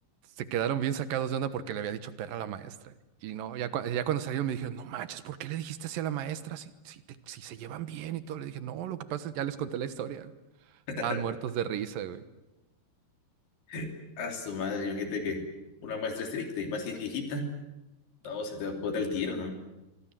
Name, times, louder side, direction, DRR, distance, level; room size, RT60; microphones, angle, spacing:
voice 1, 0.4-2.9 3.2-10.3 11.0-12.2, right 10 dB, 65° right, 12 dB, 2.6 m, -34 dB
voice 2, 10.9-11.2 13.7-13.9 14.2-15.4 15.8-17.5 18.2-19.6, left 4 dB, 70° left, 4 dB, 5.1 m, -33 dB
25.5 x 25.0 x 7.6 m, 1.0 s
omnidirectional pair, 4.9 m